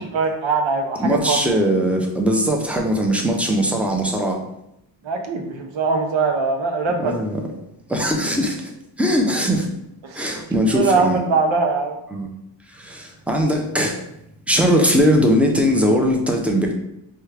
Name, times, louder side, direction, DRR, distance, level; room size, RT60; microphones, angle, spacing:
voice 1, 0.0-1.5 5.0-7.1 10.0-10.3 10.7-12.0, right 4 dB, 75° right, 4 dB, 0.8 m, -21 dB
voice 2, 1.0-4.4 7.0-7.4 7.9-8.7 9.0-9.7 10.1-11.2 12.1-12.3 12.7-14.0 14.5-16.7, equal, 5° right, 0 dB, 0.6 m, -20 dB
4.4 x 2.4 x 3.3 m, 0.82 s
cardioid pair, 90°, 46 cm